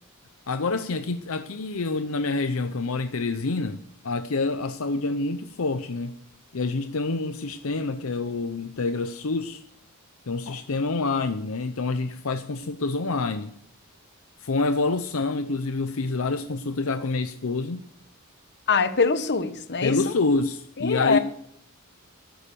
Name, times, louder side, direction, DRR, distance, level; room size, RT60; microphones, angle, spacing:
voice 1, 0.5-6.1 6.5-9.6 10.3-13.5 14.4-17.8 19.8-21.2, left 3 dB, 70° left, 0.7 m, -27 dB
voice 2, 18.7-20.0 20.8-21.2, left 4 dB, 50° left, 1.0 m, -23 dB
13.0 x 11.0 x 6.9 m
head